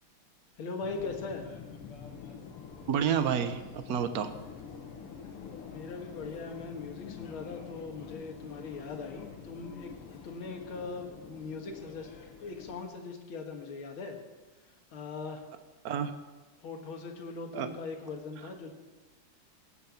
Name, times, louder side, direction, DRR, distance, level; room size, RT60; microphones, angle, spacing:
voice 1, 0.6-1.5 5.7-12.1 12.4-14.2 14.6-15.4 16.6-18.7, left 4 dB, 70° left, 4 dB, 2.3 m, -40 dB
Subway metro underground, 0.8-12.8, left 6 dB, 85° left, 2.2 m, -47 dB
voice 2, 2.9-4.3 15.8-16.1 17.5-17.7, right 8 dB, 55° right, 10 dB, 1.0 m, -29 dB
17.5 x 6.8 x 7.1 m, 1.2 s
omnidirectional pair, 2.4 m